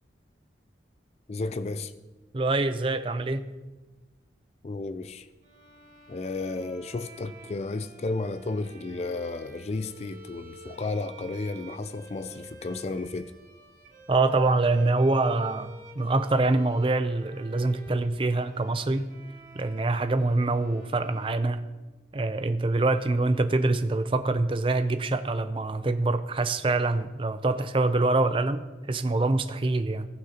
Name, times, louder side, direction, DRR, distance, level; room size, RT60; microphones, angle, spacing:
voice 1, 1.3-1.9 4.6-5.3 6.1-13.3, left 3 dB, 35° left, 0.3 m, -33 dB
voice 2, 2.3-3.5 14.1-19.1 19.6-21.7 22.1-30.1, right 2 dB, 30° right, 0.5 m, -25 dB
sound 1, 5.4-22.3, right 2 dB, 45° right, 1.8 m, -50 dB
18.5 x 6.4 x 2.9 m
head